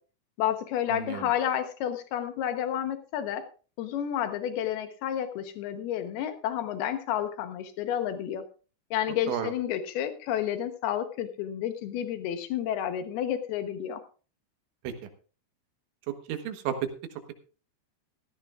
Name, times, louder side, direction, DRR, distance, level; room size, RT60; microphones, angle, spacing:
voice 1, 0.4-3.4 3.8-8.4 8.9-14.0, left 10 dB, 70° left, 8 dB, 2.5 m, -30 dB
voice 2, 0.9-1.3 9.3-9.5 14.8-14.9 16.1-16.9, right 9 dB, 75° right, 7 dB, 3.5 m, -32 dB
17.0 x 13.5 x 2.4 m, 0.36 s
omnidirectional pair, 5.7 m